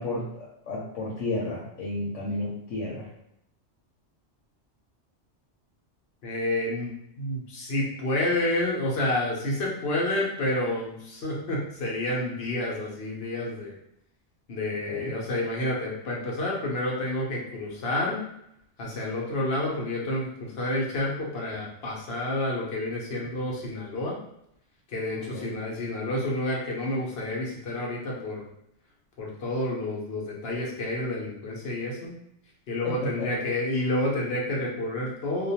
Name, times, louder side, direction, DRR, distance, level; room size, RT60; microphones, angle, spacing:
voice 1, 0.0-3.1 14.9-15.1 25.3-25.5 32.8-33.3, left 2 dB, 85° left, -5 dB, 0.9 m, -32 dB
voice 2, 6.2-13.8 14.5-18.2 18.8-24.1 24.9-28.5 29.2-32.1 32.7-35.5, left 1 dB, 60° left, -3 dB, 0.8 m, -29 dB
2.4 x 2.2 x 2.7 m, 0.76 s
omnidirectional pair, 1.2 m